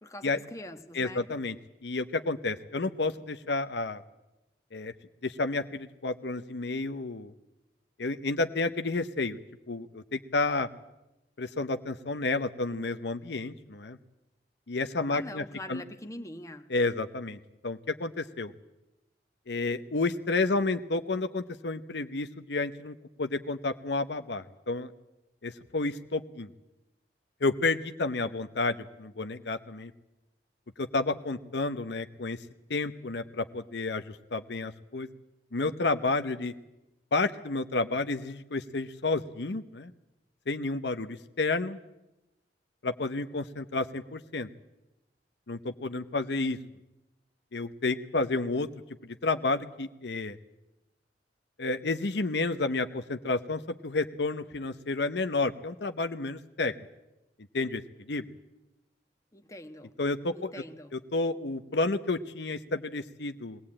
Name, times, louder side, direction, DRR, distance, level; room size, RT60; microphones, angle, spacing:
voice 1, 0.0-1.3 15.1-16.7 59.3-59.9 60.3-60.9, left 1 dB, 20° left, 6 dB, 1.3 m, -43 dB
voice 2, 0.9-1.6 1.8-4.0 4.7-4.9 5.2-7.3 8.0-9.4 9.7-10.7 11.4-14.0 14.7-15.4 15.7-15.8 16.7-18.5 19.5-24.9 25.4-26.5 27.4-29.9 30.8-32.4 32.7-35.1 35.5-36.5 37.1-39.9 40.5-41.8 42.8-44.5 45.5-46.6 47.5-48.7 49.2-50.4 51.6-56.7 57.5-57.8 58.1-58.2 60.0-60.5 60.9-63.6, left 3 dB, 70° left, 9 dB, 0.8 m, -30 dB
22.0 x 18.0 x 8.7 m, 0.96 s
head